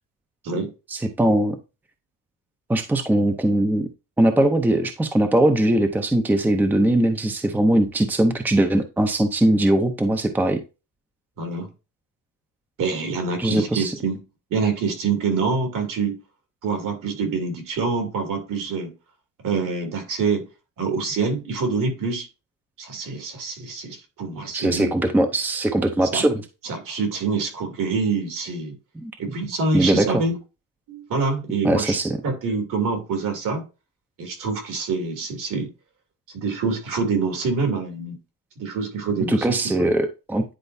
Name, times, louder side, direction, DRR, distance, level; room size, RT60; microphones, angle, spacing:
voice 1, 0.9-1.6 2.7-3.9 4.2-10.6 13.4-13.9 24.5-26.4 29.0-29.1 29.7-30.2 31.6-32.2 39.3-40.4, right 1 dB, 5° right, 0.6 m, -20 dB
voice 2, 11.4-11.7 12.8-14.2 14.5-16.2 16.6-18.9 19.4-20.5 20.8-22.3 22.8-24.9 26.1-26.3 26.6-28.8 29.2-30.4 30.9-32.0 32.2-33.6 34.2-35.7 36.3-38.2 38.6-39.6, right 4 dB, 70° right, 2.8 m, -26 dB
10.0 x 4.4 x 2.7 m
cardioid pair, 165°, 33 cm